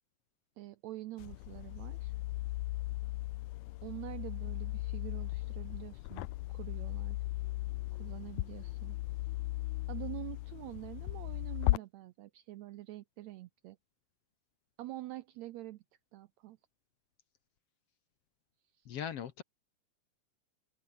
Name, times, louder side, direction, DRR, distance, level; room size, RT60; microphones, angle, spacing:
voice 1, 0.6-2.1 3.8-7.2 7.9-9.0 9.9-13.8 14.8-15.8 16.1-16.6 18.8-18.9, right 16 dB, 75° right, 1.7 m, -46 dB
sound 1, 1.2-11.8, left 19 dB, 80° left, 1.9 m, -37 dB
voice 2, 18.9-19.4, left 9 dB, 60° left, 1.8 m, -39 dB
open air
omnidirectional pair, 3.8 m